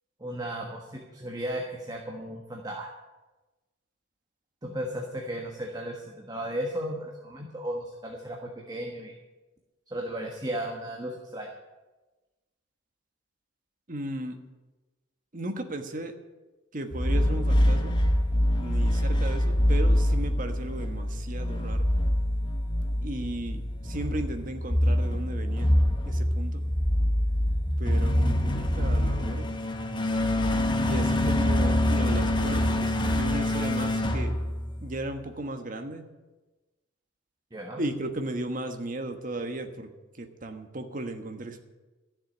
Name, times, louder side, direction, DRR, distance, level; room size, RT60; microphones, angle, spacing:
voice 1, 0.2-2.9 4.6-9.1 9.9-11.5 37.5-37.8, right 1 dB, 20° right, 1 dB, 1.4 m, -35 dB
voice 2, 13.9-14.4 15.3-16.2 16.7-18.0 18.5-21.9 23.0-25.7 26.0-26.6 27.8-29.5 30.9-34.4 34.8-36.0 37.8-39.9 40.1-41.6, right 1 dB, 45° right, 6 dB, 1.3 m, -35 dB
sound 1, 16.9-35.1, left 1 dB, 25° left, 1.2 m, -25 dB
13.0 x 7.4 x 9.7 m, 1.2 s
head